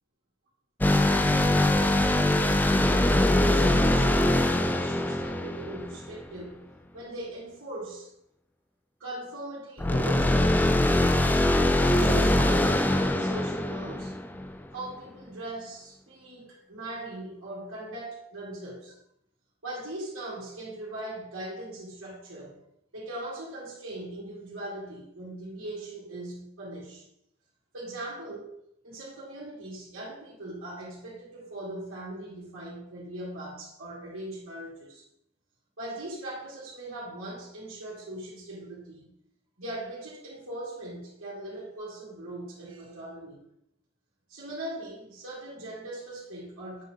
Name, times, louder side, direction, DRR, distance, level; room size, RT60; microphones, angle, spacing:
sound 1, 0.8-6.3 9.8-14.5, left 1 dB, 10° left, 0.3 m, -23 dB
voice 1, 3.4-6.6 6.9-8.1 9.0-10.7 11.7-14.2 14.7-19.0 19.6-22.6 22.9-27.0 27.7-28.5 28.8-35.0 35.8-39.1 39.6-43.4 44.3-46.8, right 1 dB, 85° right, -8 dB, 2.4 m, -40 dB
8.1 x 4.1 x 4.6 m, 0.77 s
head